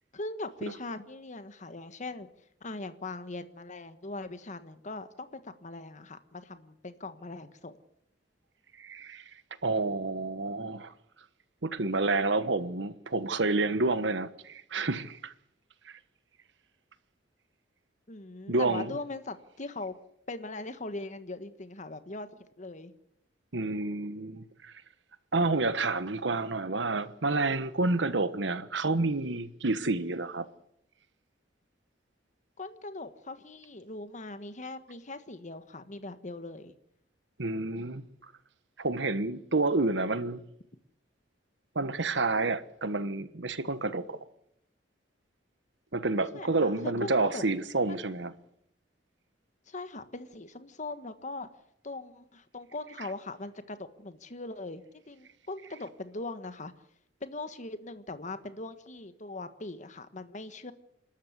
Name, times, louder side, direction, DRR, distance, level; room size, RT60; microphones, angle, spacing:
voice 1, 0.1-2.3 2.6-7.8 18.1-19.9 20.3-22.3 22.6-22.9 32.6-36.7 46.2-47.4 47.9-48.1 49.7-51.5 51.8-56.7 57.2-60.7, left 2 dB, 45° left, 1.4 m, -40 dB
voice 2, 8.8-9.2 9.6-10.9 11.6-15.3 15.8-15.9 18.5-18.9 23.5-24.7 25.3-30.5 37.4-38.1 38.8-40.4 41.7-44.2 45.9-48.3, right 3 dB, 80° right, 1.3 m, -29 dB
28.0 x 13.0 x 8.1 m
head